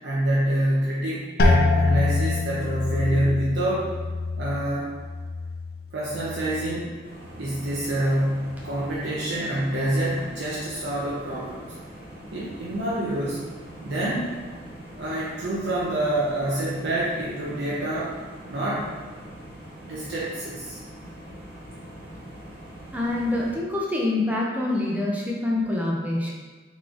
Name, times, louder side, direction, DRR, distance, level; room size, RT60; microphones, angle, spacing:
voice 1, 0.0-3.9 4.4-4.9 5.9-7.0 7.3-11.7 12.3-13.4 13.8-14.4 14.9-18.2 18.5-18.9 19.8-20.8, right 1 dB, 65° right, -7 dB, 0.7 m, -27 dB
sound 1, 1.4-7.0 7.3-8.0 8.6-9.0, left 3 dB, 50° left, 0.4 m, -26 dB
sound 2, 7.0-23.6, right 1 dB, 50° right, 1.5 m, -43 dB
voice 2, 22.9-26.3, left 2 dB, 10° right, -3 dB, 0.6 m, -25 dB
3.9 x 3.1 x 3.7 m, 1.4 s
head